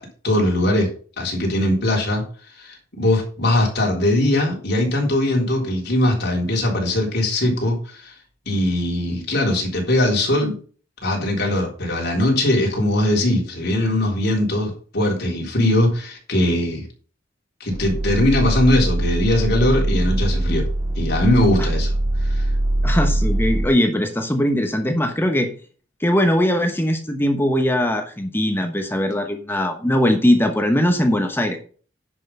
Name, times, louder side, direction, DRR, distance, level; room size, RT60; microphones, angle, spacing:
voice 1, 0.2-0.9 1.2-2.2 2.6-8.1 8.5-10.6 11.0-16.9 17.6-20.7 21.0-21.9 22.2-22.5, left 1 dB, 60° left, 0 dB, 3.7 m, -20 dB
sound 1, 17.7-23.7, right 1 dB, 15° right, 0.4 m, -22 dB
voice 2, 22.8-25.5 26.0-31.6, equal, 10° left, 5 dB, 1.1 m, -20 dB
10.0 x 5.8 x 5.5 m, 0.41 s
head